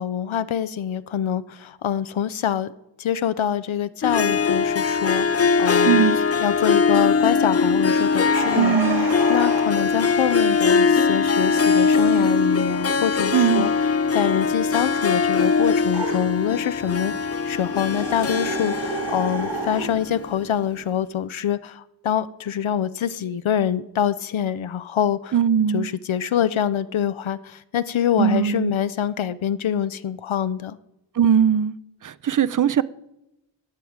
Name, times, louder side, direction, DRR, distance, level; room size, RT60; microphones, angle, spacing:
voice 1, 0.0-2.7 3.0-6.0 6.4-13.7 14.1-25.4 25.7-30.8, left 9 dB, 80° left, 0.6 m, -25 dB
Harp, 4.0-20.5, left 5 dB, 35° left, 0.5 m, -21 dB
voice 2, 5.9-6.2 8.5-9.1 13.3-13.7 25.3-25.9 28.2-28.7 31.2-31.7 32.0-32.8, right 8 dB, 45° right, 0.5 m, -19 dB
sound 1, 8.3-9.9 15.9-16.3 17.8-19.9, right 3 dB, 65° right, 3.0 m, -30 dB
12.5 x 4.8 x 8.7 m
wide cardioid pair, 60°, 47 cm